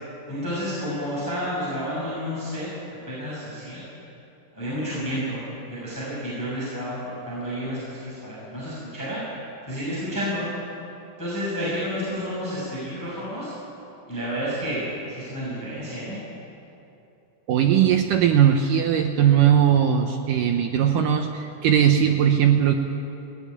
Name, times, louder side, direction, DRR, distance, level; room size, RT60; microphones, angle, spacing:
voice 1, 0.3-2.7 3.1-3.8 4.5-5.4 5.7-9.2 9.7-10.5 11.2-13.5 14.1-16.2, equal, 5° left, -9 dB, 6.3 m, -30 dB
voice 2, 17.5-22.7, right 9 dB, 75° right, 4 dB, 2.1 m, -19 dB
20.5 x 15.5 x 9.9 m, 2.8 s
omnidirectional pair, 4.6 m